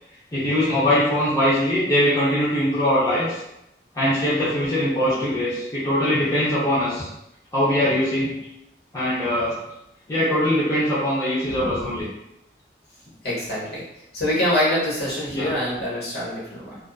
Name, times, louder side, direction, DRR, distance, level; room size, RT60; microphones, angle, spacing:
voice 1, 0.3-3.4 3.9-7.1 7.5-8.4 8.9-9.6 10.1-12.1 15.3-15.5, left 1 dB, 20° left, -10 dB, 0.6 m, -22 dB
voice 2, 13.2-13.8 14.1-16.8, left 1 dB, 65° left, -7 dB, 1.2 m, -25 dB
2.5 x 2.3 x 2.4 m, 0.86 s
head